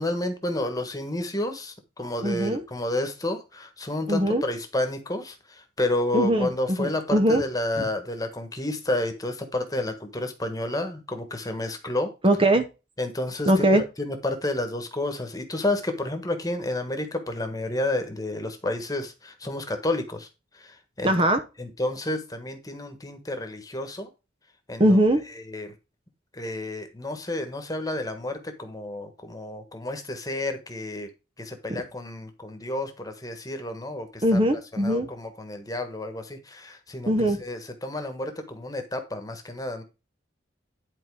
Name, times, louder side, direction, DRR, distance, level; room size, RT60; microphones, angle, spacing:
voice 1, 0.0-12.1 13.0-20.3 20.5-21.1 21.6-24.1 24.7-25.0 25.4-25.7 26.3-31.1 31.4-34.4 34.7-39.8, left 1 dB, 20° left, 1.4 m, -30 dB
voice 2, 2.2-2.6 4.1-4.4 6.1-7.4 7.8-7.9 12.2-12.7 13.5-13.8 21.0-21.4 24.8-25.2 31.7-31.8 34.2-35.1 37.1-37.4, right 1 dB, 25° right, 0.8 m, -21 dB
11.0 x 4.4 x 4.8 m
head